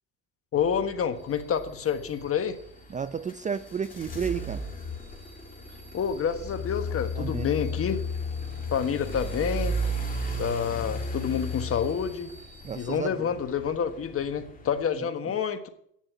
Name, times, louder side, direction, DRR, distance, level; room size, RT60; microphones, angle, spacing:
voice 1, 0.5-2.6 5.9-8.0 8.7-9.8 10.4-12.3 12.7-15.7, left 7 dB, 40° left, 8 dB, 1.4 m, -28 dB
sound 1, 0.6-14.8, left 1 dB, 25° left, 2.4 m, -35 dB
sound 2, 1.1-12.9, right 3 dB, 50° right, 3.0 m, -54 dB
voice 2, 2.9-4.7 7.2-7.5 12.6-13.2 15.0-15.1, right 6 dB, 20° right, 13 dB, 0.5 m, -32 dB
9.2 x 7.1 x 8.1 m, 0.69 s
supercardioid pair, 90°, 35 cm